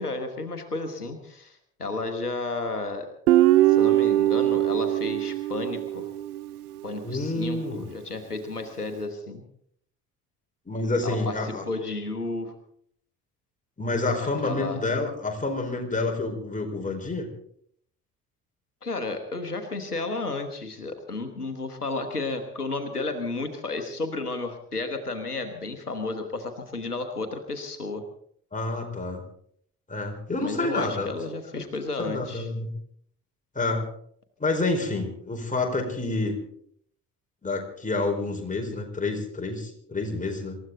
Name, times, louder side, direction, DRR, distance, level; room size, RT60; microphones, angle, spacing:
voice 1, 0.0-3.1 3.7-6.1 6.8-9.4 11.0-12.5 14.2-14.8 18.8-28.0 30.4-32.5, left 3 dB, 90° left, 7 dB, 1.3 m, -32 dB
Guitar, 3.3-6.6, right 15 dB, 80° right, 0.6 m, -21 dB
voice 2, 7.0-7.8 10.7-11.6 13.8-17.3 28.5-29.2 29.9-31.1 31.5-31.7 32.0-32.7 33.5-33.8 34.4-36.4 37.4-40.6, left 2 dB, 15° left, 2 dB, 4.4 m, -28 dB
26.5 x 14.0 x 3.9 m, 0.66 s
figure-of-eight pair, 50°, 45 cm